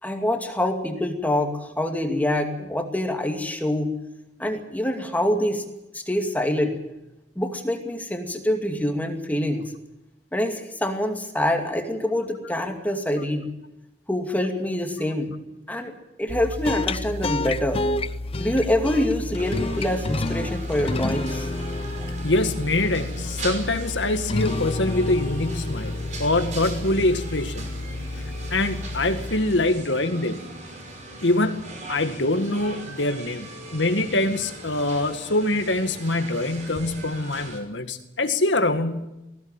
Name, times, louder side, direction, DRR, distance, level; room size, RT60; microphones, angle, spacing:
voice 1, 0.0-4.0 4.4-5.6 5.9-6.8 7.4-9.7 10.3-13.5 14.1-15.3 15.7-15.9 16.2-17.8 18.4-21.5, left 1 dB, 10° left, 4 dB, 2.4 m, -25 dB
sound 1, 16.3-29.9, left 2 dB, 35° left, 0.7 m, -30 dB
sound 2, 19.4-37.6, right 2 dB, 45° right, 5.4 m, -39 dB
voice 2, 22.2-27.7 28.5-30.4 31.2-39.1, left 2 dB, 85° left, 8 dB, 2.0 m, -24 dB
20.5 x 16.0 x 9.1 m, 0.93 s
head